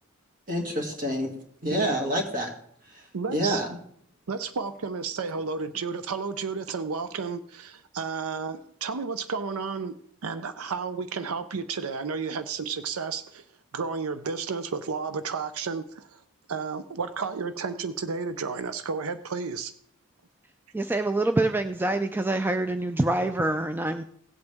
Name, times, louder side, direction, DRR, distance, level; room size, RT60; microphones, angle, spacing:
voice 1, 0.5-1.3 1.6-2.5 2.9-3.8, equal, 40° right, 2.2 m, -28 dB
voice 2, 3.1-3.6 4.3-13.4 13.7-16.2 16.5-19.7, right 5 dB, 90° right, 0.6 m, -32 dB
voice 3, 20.7-24.0, right 2 dB, 10° right, 0.3 m, -25 dB
17.5 x 8.0 x 3.5 m
head